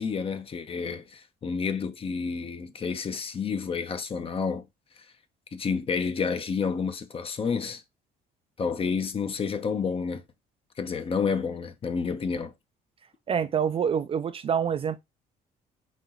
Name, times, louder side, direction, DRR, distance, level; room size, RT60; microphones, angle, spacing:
voice 1, 0.0-4.7 5.5-7.8 8.6-10.2 10.8-12.5, left 5 dB, 35° left, 0.7 m, -30 dB
voice 2, 13.3-15.0, right 7 dB, 35° right, 0.4 m, -26 dB
4.2 x 3.0 x 3.7 m
cardioid pair, 110°, 17 cm